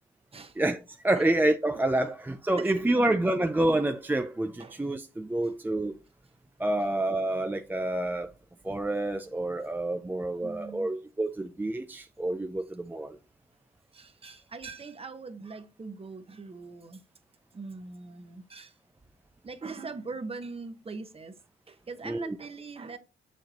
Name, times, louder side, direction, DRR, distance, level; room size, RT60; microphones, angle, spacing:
voice 1, 0.6-5.9 6.6-8.3 8.6-13.2 22.0-22.4, right 1 dB, 10° right, 0.5 m, -28 dB
voice 2, 2.5-3.1 4.6-4.8 10.4-10.9 13.9-17.0 17.5-18.7 19.4-21.4 21.7-23.0, right 4 dB, 30° right, 1.1 m, -41 dB
6.7 x 6.5 x 2.9 m
cardioid pair, 90°, 20 cm